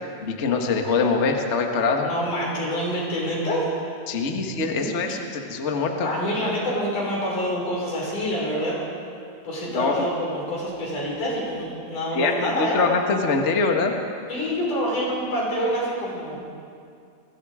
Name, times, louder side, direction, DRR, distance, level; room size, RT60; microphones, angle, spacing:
voice 1, 0.2-2.1 4.1-6.1 9.7-10.0 12.1-13.9, left 4 dB, 40° left, 3 dB, 1.0 m, -23 dB
voice 2, 2.0-3.9 4.8-4.9 6.0-8.8 9.4-12.8 14.3-16.4, equal, 65° left, -4 dB, 7.1 m, -27 dB
28.5 x 20.5 x 5.0 m, 2.4 s
omnidirectional pair, 3.9 m